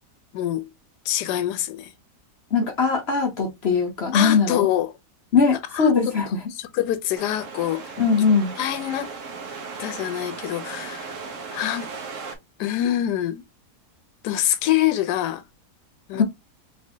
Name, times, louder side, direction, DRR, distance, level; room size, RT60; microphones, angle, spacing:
voice 1, 0.3-0.7 1.0-1.9 4.1-5.0 5.7-6.1 6.5-7.9 8.6-9.1 9.8-11.2 11.5-11.9 12.6-13.4 14.2-15.4 16.1-16.2, left 12 dB, 80° left, 1.2 m, -25 dB
voice 2, 2.5-4.7 5.3-6.3 8.0-8.5 16.1-16.2, left 5 dB, 50° left, 0.8 m, -20 dB
sound 1, 7.2-12.4, right 5 dB, 55° right, 1.1 m, -36 dB
3.3 x 3.2 x 2.7 m
omnidirectional pair, 1.8 m